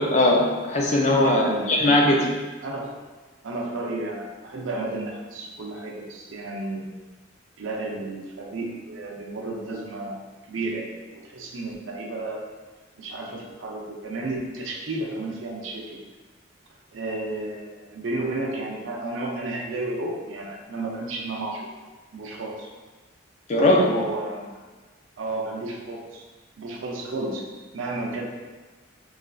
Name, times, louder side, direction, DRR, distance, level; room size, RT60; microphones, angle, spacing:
voice 1, 0.0-2.3 23.5-23.9, left 1 dB, 35° left, -1 dB, 0.4 m, -19 dB
voice 2, 1.2-1.9 2.6-3.0 3.4-6.9 7.6-12.5 13.0-16.0 16.9-21.7 22.1-22.7 23.5-24.6 25.2-26.2 26.6-28.3, right 2 dB, 80° right, 0 dB, 0.5 m, -32 dB
3.1 x 2.5 x 2.3 m, 1.3 s
head